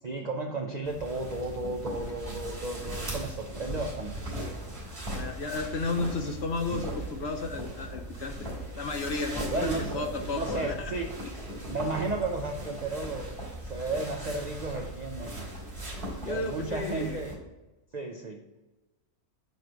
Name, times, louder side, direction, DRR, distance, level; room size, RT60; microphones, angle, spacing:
voice 1, 0.0-4.2 9.5-10.1 10.3-11.1 11.7-13.4 13.6-15.4 16.1-17.3 17.9-18.4, right 3 dB, 65° right, 3 dB, 0.4 m, -33 dB
sound 1, 0.8-17.3, right 1 dB, 40° right, 3.2 m, -38 dB
voice 2, 5.0-8.3 8.7-10.9 11.6-11.7 16.2-17.2, left 3 dB, 55° left, 5 dB, 0.8 m, -33 dB
9.1 x 3.2 x 6.2 m, 1.1 s
omnidirectional pair, 1.6 m